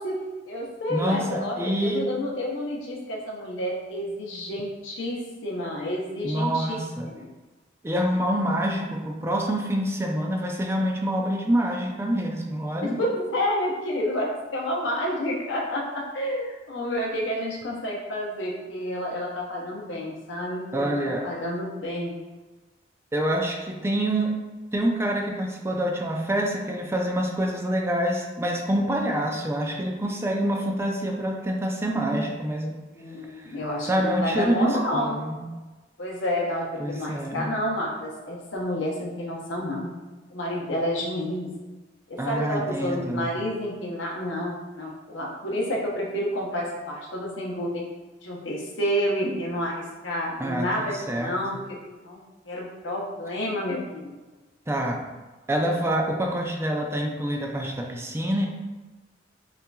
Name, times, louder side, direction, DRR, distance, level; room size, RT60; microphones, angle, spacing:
voice 1, 0.0-7.3 12.8-22.2 32.9-35.2 36.0-40.0 40.3-41.5 42.1-47.8 48.2-52.2 52.4-54.2, equal, 80° left, -2 dB, 0.8 m, -30 dB
voice 2, 0.9-2.1 6.2-7.1 7.8-13.0 20.7-21.2 23.1-24.4 24.7-32.8 33.3-35.5 36.8-37.5 42.2-43.4 50.4-51.3 54.7-55.0 55.5-58.5, right 1 dB, 15° right, 0 dB, 0.4 m, -26 dB
5.5 x 2.5 x 2.3 m, 1.2 s
head